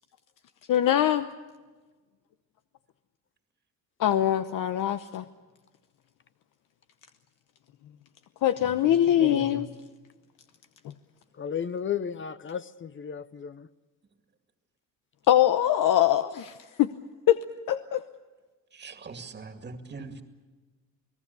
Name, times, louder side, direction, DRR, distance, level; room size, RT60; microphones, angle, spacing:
voice 1, 0.7-1.3 4.0-5.2 8.4-9.7 15.3-16.9 17.3-17.4 17.7-18.0, left 12 dB, 75° left, 0.9 m, -23 dB
voice 2, 9.2-9.6 18.7-20.2, right 4 dB, 30° right, 2.2 m, -40 dB
voice 3, 11.3-13.7, left 8 dB, 35° left, 0.7 m, -33 dB
29.5 x 18.5 x 6.9 m
cardioid pair, 130°, 33 cm